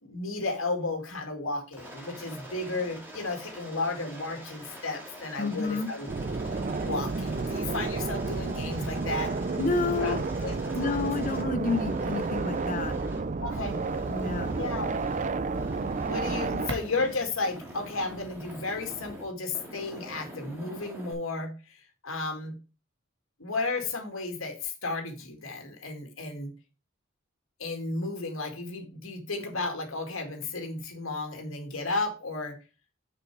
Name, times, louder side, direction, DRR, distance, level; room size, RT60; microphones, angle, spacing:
voice 1, 0.0-6.1 6.5-9.3 9.9-11.1 13.4-13.8 14.5-14.9 16.1-22.5 23.4-26.5 27.6-32.6, left 3 dB, 80° left, 3 dB, 2.2 m, -33 dB
Aircraft, 1.7-13.2 13.5-15.3 15.5-17.2 17.4-19.2 19.5-21.1, equal, 10° right, 2.1 m, -45 dB
voice 2, 5.4-5.9 9.6-10.2 10.7-13.0 14.1-14.5 16.5-16.6, left 3 dB, 40° left, 12 dB, 0.8 m, -29 dB
sound 1, 6.1-16.7, right 3 dB, 35° right, 0.4 m, -31 dB
sound 2, 13.9-19.3, right 1 dB, 60° right, 1.6 m, -45 dB
6.4 x 6.1 x 4.7 m, 0.32 s
head